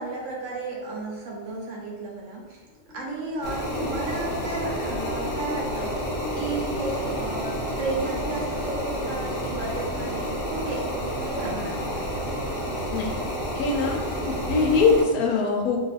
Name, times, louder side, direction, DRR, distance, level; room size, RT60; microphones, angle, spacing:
voice 1, 0.0-2.6 2.9-12.3, right 3 dB, 65° right, -2 dB, 0.8 m, -33 dB
sound 1, 2.7-11.1, left 2 dB, 5° left, 0.4 m, -40 dB
sound 2, 3.4-15.0, equal, 55° left, 0.6 m, -30 dB
voice 2, 13.5-14.0 14.3-15.8, left 4 dB, 75° left, 1 dB, 1.0 m, -22 dB
2.6 x 2.4 x 4.0 m, 1.4 s
omnidirectional pair, 1.6 m